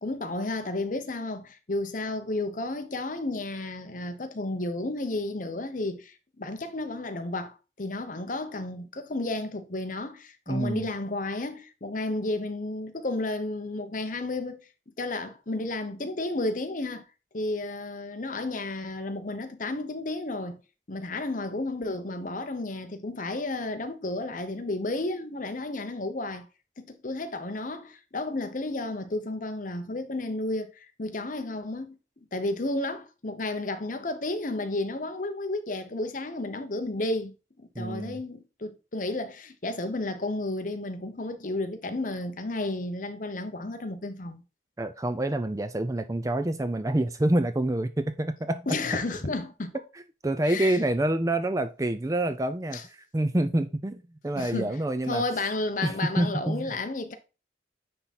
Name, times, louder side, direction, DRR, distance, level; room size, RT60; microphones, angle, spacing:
voice 1, 0.0-14.6 15.0-17.1 17.3-20.6 20.9-26.5 26.8-32.0 32.3-44.4 48.7-49.8 50.4-50.8 52.7-52.8 54.3-54.8 55.1-57.1, left 2 dB, 45° left, 0.9 m, -32 dB
voice 2, 10.5-10.8 37.8-38.2 44.8-48.6 50.2-52.8 53.1-55.2 55.8-56.7, right 1 dB, 20° right, 0.4 m, -27 dB
9.7 x 3.6 x 4.2 m
head